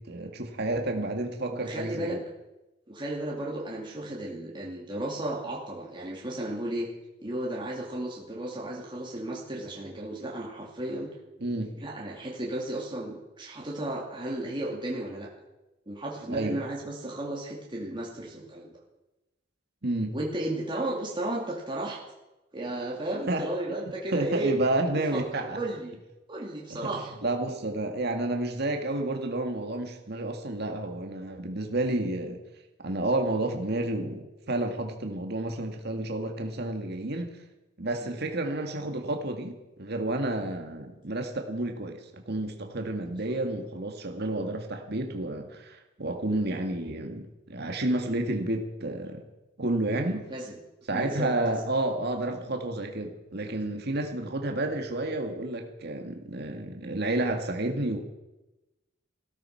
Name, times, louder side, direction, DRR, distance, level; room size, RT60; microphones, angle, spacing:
voice 1, 0.0-2.2 11.4-11.7 16.3-16.6 19.8-20.2 23.3-23.4 24.1-25.6 26.7-26.9 27.2-32.4 32.8-37.4 37.8-49.2 49.6-50.2 50.9-58.0, right 2 dB, 55° right, 4 dB, 2.0 m, -30 dB
voice 2, 1.5-2.2 2.9-6.9 7.2-11.1 11.8-15.3 15.9-18.7 20.1-22.0 22.5-24.5 24.9-26.0 26.3-27.1 38.0-38.1 49.9-50.6 50.9-51.6, right 1 dB, 25° right, -3 dB, 2.5 m, -34 dB
17.0 x 13.0 x 5.8 m, 1.0 s
head